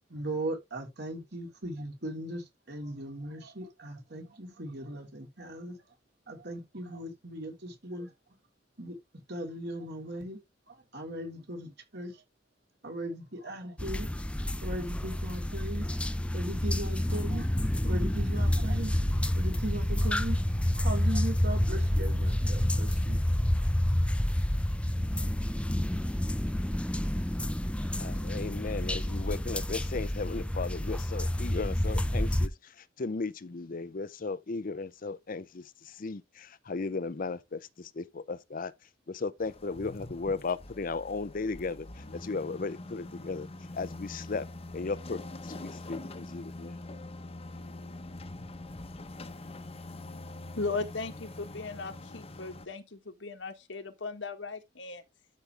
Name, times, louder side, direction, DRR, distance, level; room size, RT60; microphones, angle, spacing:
voice 1, 0.1-5.8 6.3-8.1 8.8-9.0 9.3-10.4 10.7-12.2 12.8-14.1 14.6-16.0 16.3-17.5 17.8-19.1 19.4-20.4 20.7-23.2, right 1 dB, 60° right, 3.6 m, -38 dB
sound 1, 13.8-32.5, left 1 dB, 5° left, 0.6 m, -29 dB
voice 2, 28.0-38.7 39.1-43.5 43.7-44.5 44.7-46.8, left 4 dB, 50° left, 0.6 m, -36 dB
sound 2, 39.4-52.7, left 2 dB, 30° left, 1.0 m, -44 dB
voice 3, 50.5-55.0, left 3 dB, 80° left, 1.6 m, -37 dB
12.5 x 5.3 x 3.3 m
head